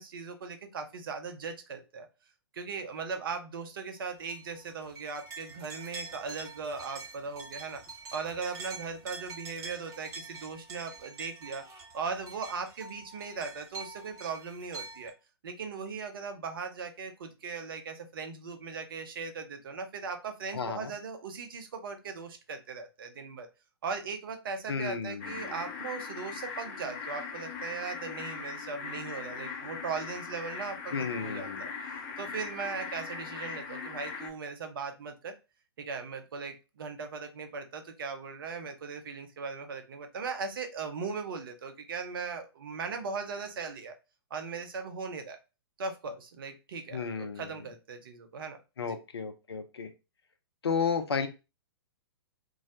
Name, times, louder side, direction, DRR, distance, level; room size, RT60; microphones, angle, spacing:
voice 1, 0.0-2.1 2.5-7.8 8.1-11.6 11.9-15.1 15.4-23.5 23.8-31.7 32.2-35.3 35.8-43.9 44.3-45.4 45.8-49.0, right 5 dB, 60° right, 6 dB, 0.6 m, -38 dB
sound 1, 4.3-15.1, right 4 dB, 20° right, 0.7 m, -45 dB
voice 2, 20.5-20.9 24.7-25.5 30.9-31.6 46.9-47.6 48.8-49.9 50.6-51.3, left 5 dB, 75° left, 8 dB, 0.5 m, -33 dB
sound 2, 25.2-34.3, left 5 dB, 40° left, 0.7 m, -40 dB
2.3 x 2.0 x 2.7 m, 0.29 s
figure-of-eight pair, 120°, 13 cm